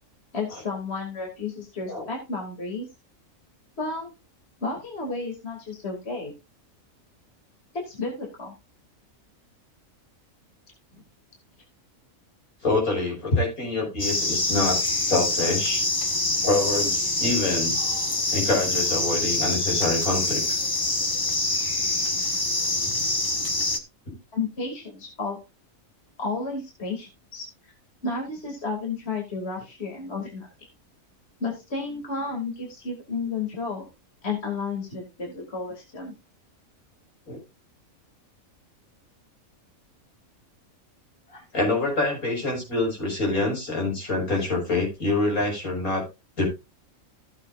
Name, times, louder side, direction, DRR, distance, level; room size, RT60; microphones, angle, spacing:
voice 1, 0.3-2.9 3.8-4.1 4.6-6.3 7.9-8.5 24.3-25.4 26.2-27.5 28.0-30.5 31.4-33.9 34.2-36.1 41.3-41.4, left 4 dB, 45° left, 0 dB, 2.8 m, -32 dB
voice 2, 12.6-15.8 16.4-17.8 18.3-20.4 24.1-24.2 37.3-37.4 41.5-46.0 46.4-46.5, left 2 dB, 80° left, -1 dB, 5.9 m, -26 dB
sound 1, 14.0-23.8, left 2 dB, 15° left, 1.1 m, -25 dB
15.0 x 8.0 x 2.5 m, 0.26 s
omnidirectional pair, 1.5 m